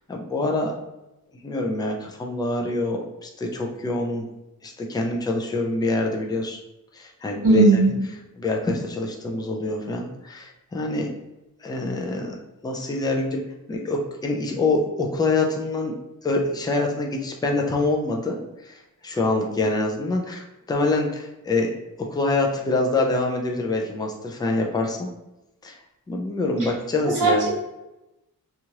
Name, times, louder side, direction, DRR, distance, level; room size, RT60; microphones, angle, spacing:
voice 1, 0.1-0.7 1.4-4.3 4.6-6.6 6.9-7.6 8.4-11.1 11.6-12.4 12.6-13.4 13.7-15.9 16.2-21.7 22.0-25.1 25.6-25.8 26.1-27.4, left 2 dB, 10° left, 1 dB, 0.3 m, -25 dB
voice 2, 7.4-7.9 27.0-27.5, right 3 dB, 55° right, -7 dB, 1.3 m, -17 dB
3.0 x 2.4 x 2.8 m, 0.97 s
wide cardioid pair, 130°, 38 cm